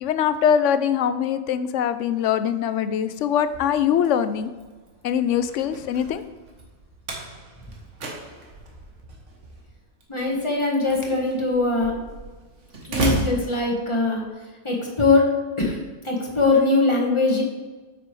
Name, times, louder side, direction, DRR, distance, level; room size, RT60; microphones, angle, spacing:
voice 1, 0.0-4.5 5.0-6.2, left 8 dB, 85° left, 12 dB, 0.9 m, -22 dB
Slam, 3.4-14.3, right 2 dB, 80° right, 1.6 m, -35 dB
voice 2, 10.1-12.0 12.9-14.2 14.6-17.4, left 3 dB, 25° left, -2 dB, 1.4 m, -21 dB
8.7 x 6.1 x 3.2 m, 1.3 s
omnidirectional pair, 1.2 m